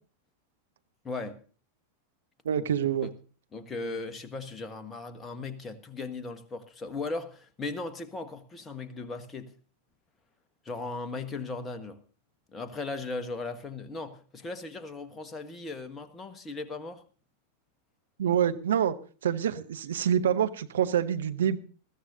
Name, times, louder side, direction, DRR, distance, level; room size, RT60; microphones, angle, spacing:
voice 1, 1.0-1.4 3.0-3.1 3.5-9.5 10.6-12.0 12.5-17.0, left 3 dB, 20° left, 1.3 m, -37 dB
voice 2, 2.4-3.1 18.2-18.9 19.2-21.6, right 9 dB, 60° right, 0.8 m, -26 dB
20.5 x 14.5 x 2.7 m
figure-of-eight pair, 90°, 0 cm